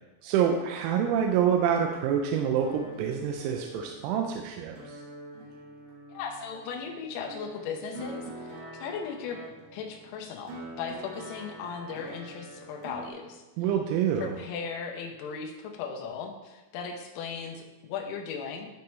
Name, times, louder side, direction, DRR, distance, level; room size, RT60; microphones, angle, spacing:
voice 1, 0.2-5.0 13.6-14.3, right 8 dB, 90° right, 3 dB, 3.3 m, -27 dB
sound 1, 2.3-13.1, right 1 dB, 70° right, 2.1 m, -45 dB
voice 2, 6.2-9.4 9.7-13.4 14.2-18.7, left 6 dB, 90° left, 1 dB, 3.6 m, -37 dB
13.0 x 4.6 x 3.1 m, 1.1 s
omnidirectional pair, 6.0 m